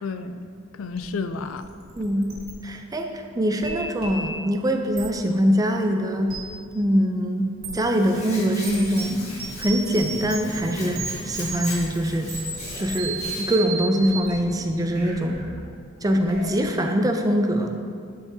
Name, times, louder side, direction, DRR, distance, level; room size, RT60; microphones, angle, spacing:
voice 1, 0.0-1.7, left 4 dB, 75° left, 10 dB, 0.4 m, -32 dB
sound 1, 1.0-1.1 1.3-2.5 3.6-4.4 4.9-5.1 6.3-6.4 7.6-7.7 8.6-16.6, right 3 dB, 50° right, 1.7 m, -34 dB
voice 2, 1.9-2.3 2.6-6.4 6.7-9.2 9.6-12.3 12.8-15.4 16.0-17.7, equal, 20° right, 4 dB, 0.5 m, -23 dB
Hands, 7.7-13.6, left 1 dB, 35° left, 1.7 m, -38 dB
12.0 x 5.9 x 2.7 m, 2.3 s
head